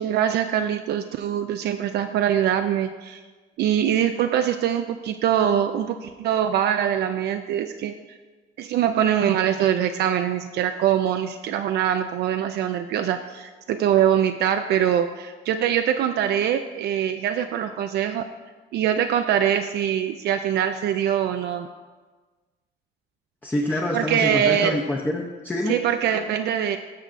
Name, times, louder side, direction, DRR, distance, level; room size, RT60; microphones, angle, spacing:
voice 1, 0.0-3.2 3.6-7.9 8.6-18.2 18.7-21.7 23.9-24.8 25.7-26.8, right 10 dB, 60° right, 7 dB, 0.4 m, -23 dB
voice 2, 23.4-25.8, left 1 dB, 10° left, -1 dB, 0.6 m, -26 dB
14.5 x 6.7 x 2.5 m, 1.3 s
cardioid pair, 165°, 19 cm